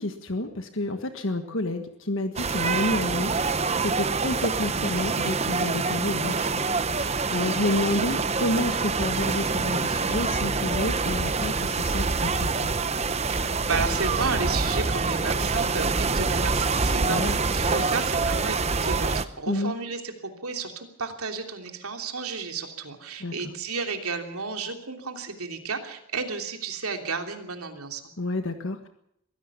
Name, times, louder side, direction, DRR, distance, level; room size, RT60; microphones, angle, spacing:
voice 1, 0.0-6.6 7.0-12.7 17.0-17.4 19.5-19.7 23.2-23.3 28.2-28.9, left 2 dB, 60° left, 7 dB, 1.5 m, -29 dB
sound 1, 2.4-19.2, right 4 dB, 30° right, 0.8 m, -26 dB
voice 2, 13.3-28.0, right 4 dB, 80° right, 4 dB, 3.1 m, -32 dB
23.0 x 16.0 x 7.1 m, 0.75 s
head